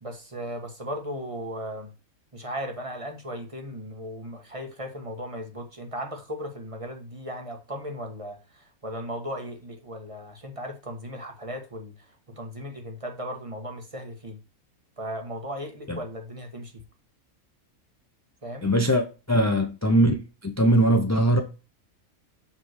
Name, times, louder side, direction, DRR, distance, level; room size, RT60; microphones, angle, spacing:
voice 1, 0.0-1.9 2.3-14.4 15.0-16.8 18.4-18.8, equal, 25° right, 1.5 m, -36 dB
voice 2, 18.6-20.1 20.4-21.4, right 1 dB, 20° left, 0.5 m, -21 dB
7.4 x 3.7 x 6.4 m
omnidirectional pair, 1.5 m